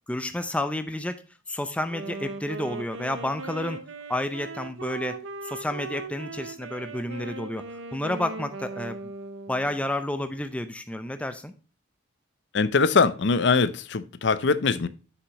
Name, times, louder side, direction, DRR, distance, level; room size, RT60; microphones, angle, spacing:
voice 1, 0.1-1.2 1.5-3.8 4.1-7.6 7.9-9.1 9.5-11.5, left 1 dB, 5° left, 9 dB, 0.5 m, -30 dB
Wind instrument woodwind instrument, 1.9-9.9, right 3 dB, 65° right, 0.8 m, -38 dB
voice 2, 12.5-14.9, left 4 dB, 60° left, 15 dB, 0.6 m, -22 dB
8.0 x 6.2 x 2.9 m, 0.35 s
head